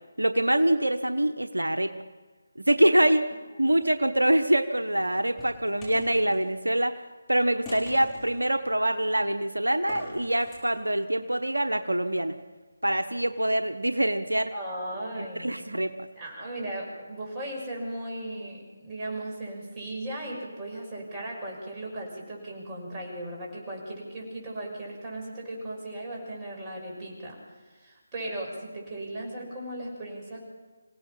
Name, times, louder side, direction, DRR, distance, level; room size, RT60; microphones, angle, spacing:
voice 1, 0.2-1.9 2.6-3.2 3.6-7.0 7.3-12.4 12.8-14.5 15.4-15.9, right 1 dB, 85° right, 8 dB, 1.1 m, -24 dB
sound 1, 3.7-4.2 4.9-6.4 7.6-8.4 9.7-10.6, left 1 dB, 10° left, 5.9 m, -43 dB
voice 2, 14.5-15.7 16.2-27.4 27.8-30.4, right 1 dB, 20° right, -3 dB, 6.4 m, -37 dB
27.0 x 17.0 x 5.7 m, 1.4 s
figure-of-eight pair, 155°, 0 cm